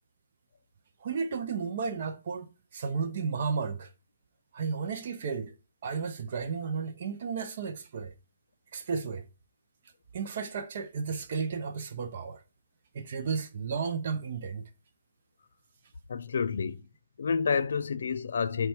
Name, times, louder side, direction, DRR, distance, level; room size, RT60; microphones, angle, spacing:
voice 1, 1.0-3.9 4.5-5.5 5.8-8.1 8.7-9.2 10.1-12.4 12.9-14.7, right 5 dB, 45° right, 0.5 m, -33 dB
voice 2, 16.1-16.8 17.2-18.7, left 6 dB, 65° left, 0.4 m, -29 dB
5.3 x 2.2 x 4.3 m
hypercardioid pair, 160°, 0 cm